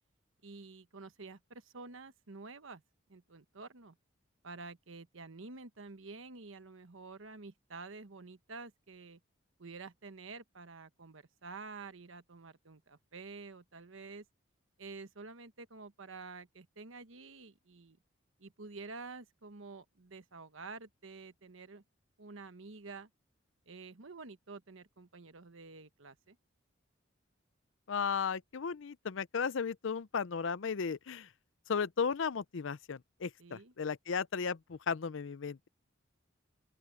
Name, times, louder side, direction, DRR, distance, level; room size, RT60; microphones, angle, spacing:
voice 1, 0.4-2.8 3.1-4.0 4.4-9.2 9.6-14.2 14.8-18.0 18.4-21.8 22.2-23.1 23.7-26.4 33.4-33.7, right 4 dB, 80° right, 1.2 m, -49 dB
voice 2, 27.9-31.3 31.7-35.7, left 6 dB, 70° left, 0.5 m, -35 dB
open air
head